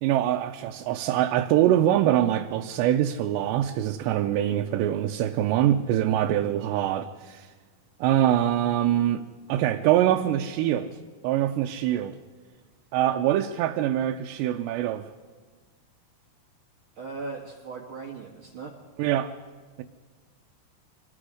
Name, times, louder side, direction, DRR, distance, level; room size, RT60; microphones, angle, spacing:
voice 1, 0.0-7.5 8.0-11.0 11.2-12.2 12.9-15.0 19.0-19.3, right 12 dB, 85° right, 2.9 m, -24 dB
voice 2, 17.0-18.7, right 4 dB, 55° right, 1.4 m, -38 dB
26.0 x 21.0 x 5.0 m
omnidirectional pair, 4.9 m